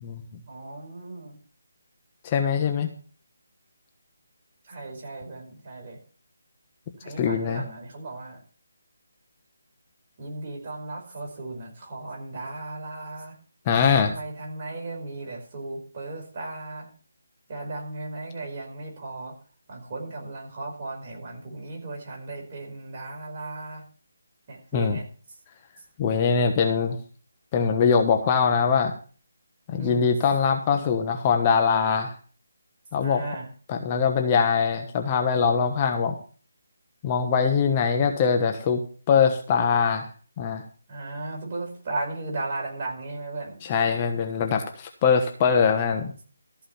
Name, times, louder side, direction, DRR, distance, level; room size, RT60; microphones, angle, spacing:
voice 1, 0.5-1.4 4.6-6.0 7.0-8.4 10.2-13.3 13.9-16.9 17.5-19.3 19.7-23.8 24.5-25.1 29.7-30.0 33.0-33.5 40.9-43.6, right 2 dB, 35° right, -1 dB, 5.0 m, -36 dB
voice 2, 2.2-2.9 7.2-7.6 13.7-14.1 24.7-25.0 26.0-27.0 27.5-28.9 29.7-32.1 32.9-33.2 33.7-36.1 37.0-38.8 39.1-40.1 40.4-40.6 43.6-46.1, left 6 dB, 25° left, 4 dB, 1.2 m, -22 dB
14.0 x 5.1 x 7.2 m, 0.41 s
figure-of-eight pair, 155°, 0 cm